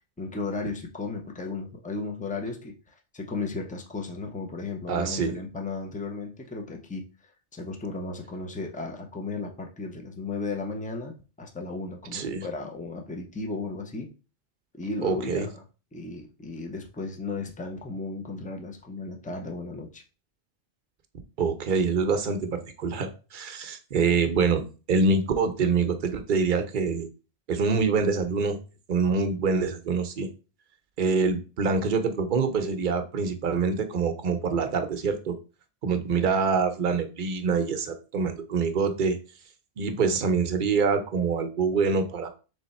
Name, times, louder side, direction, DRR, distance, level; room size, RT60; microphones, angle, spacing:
voice 1, 0.2-2.8 3.1-7.1 7.5-14.1 14.7-15.6 15.9-20.0, left 3 dB, 10° left, 2 dB, 0.4 m, -35 dB
voice 2, 4.9-5.3 12.1-12.5 15.0-15.5 21.4-27.1 27.5-28.6 28.9-30.3 31.0-35.4 35.8-39.2 39.8-42.3, right 4 dB, 55° right, 7 dB, 0.7 m, -25 dB
3.3 x 3.3 x 4.1 m, 0.34 s
omnidirectional pair, 1.1 m